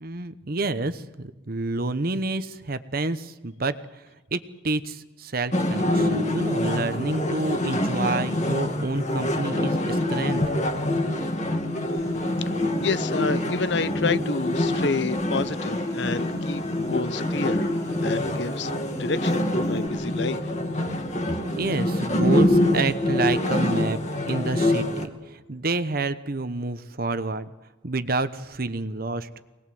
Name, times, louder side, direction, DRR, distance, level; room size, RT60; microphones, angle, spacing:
voice 1, 0.0-3.7 4.3-10.4 21.5-24.0 24.3-27.5 27.8-29.3, right 3 dB, 50° right, 1.0 m, -28 dB
sound 1, 5.5-25.1, left 1 dB, 40° left, 2.3 m, -25 dB
Human voice, 11.9-19.9, left 1 dB, 15° left, 2.6 m, -37 dB
voice 2, 12.8-16.6 16.9-20.5, left 4 dB, 65° left, 0.7 m, -29 dB
24.0 x 20.0 x 7.7 m
head